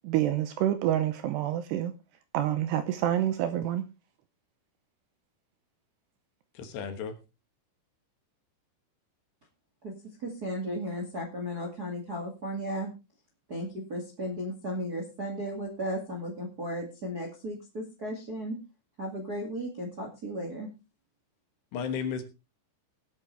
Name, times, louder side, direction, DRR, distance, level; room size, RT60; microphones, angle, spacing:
voice 1, 0.0-1.9 2.3-3.9, right 12 dB, 80° right, 2.5 m, -27 dB
voice 2, 6.5-7.1 21.7-22.2, left 6 dB, 70° left, 3.3 m, -33 dB
voice 3, 10.2-12.9 13.5-18.6 19.0-20.7, equal, 40° right, 1.4 m, -35 dB
20.0 x 8.5 x 3.3 m
omnidirectional pair, 5.5 m